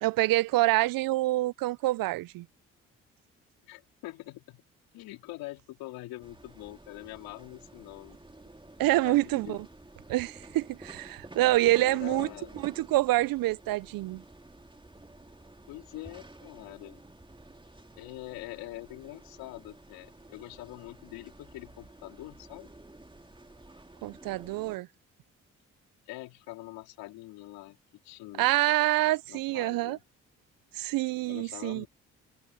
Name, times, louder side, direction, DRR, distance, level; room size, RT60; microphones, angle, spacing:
voice 1, 0.0-2.5 8.8-9.6 10.1-12.3 12.6-14.2 24.0-24.9 28.4-30.0 30.7-31.9, right 17 dB, 70° right, 0.6 m, -26 dB
voice 2, 3.6-4.6 4.9-8.2 8.9-9.6 11.8-12.6 15.7-17.0 18.0-22.7 26.1-27.8 28.0-28.5 29.3-30.0 31.3-31.9, left 18 dB, 80° left, 3.2 m, -44 dB
sound 1, 6.2-24.8, right 2 dB, 15° right, 2.4 m, -51 dB
hypercardioid pair, 45°, 36 cm